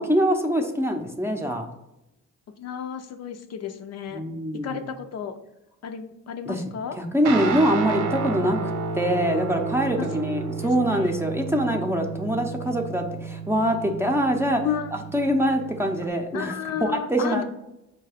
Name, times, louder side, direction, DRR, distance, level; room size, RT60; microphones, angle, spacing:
voice 1, 0.0-1.7 4.1-4.8 6.5-6.6 7.0-8.6 8.9-14.6 15.1-16.5 16.8-17.4, equal, 10° right, 3 dB, 0.6 m, -24 dB
voice 2, 2.6-4.2 4.6-5.3 5.8-7.0 10.6-11.2 14.6-14.9 16.3-17.4, left 8 dB, 55° left, 6 dB, 0.5 m, -32 dB
Guitar, 7.2-16.1, right 5 dB, 75° right, 0.7 m, -31 dB
4.6 x 2.3 x 4.8 m, 0.91 s
cardioid pair, 90°, 30 cm